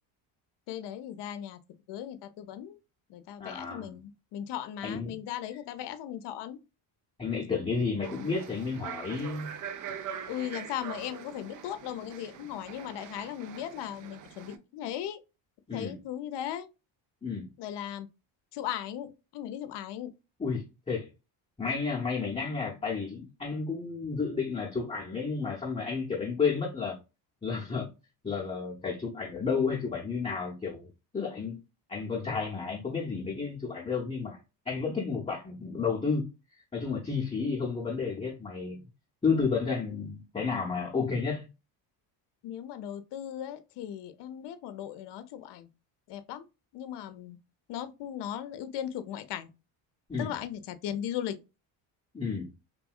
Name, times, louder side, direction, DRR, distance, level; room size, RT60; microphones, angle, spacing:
voice 1, 0.7-1.6 1.9-2.8 3.1-6.6 10.3-15.2 15.7-16.7 17.6-18.1 18.5-20.1 42.4-45.7 46.1-46.5 46.7-47.4 47.7-49.5 50.2-51.4, left 10 dB, 60° left, 0.6 m, -37 dB
voice 2, 3.4-4.0 4.8-5.2 7.2-9.5 15.7-15.9 17.2-17.5 20.4-21.1 21.6-27.0 27.4-27.9 28.2-30.9 31.1-31.6 31.9-34.4 34.7-36.3 36.7-38.8 39.2-41.5 50.1-50.3 52.1-52.5, left 5 dB, 15° left, 0.7 m, -31 dB
sound 1, 8.0-14.6, right 8 dB, 40° right, 0.4 m, -43 dB
3.0 x 2.6 x 2.3 m
supercardioid pair, 85°, 48 cm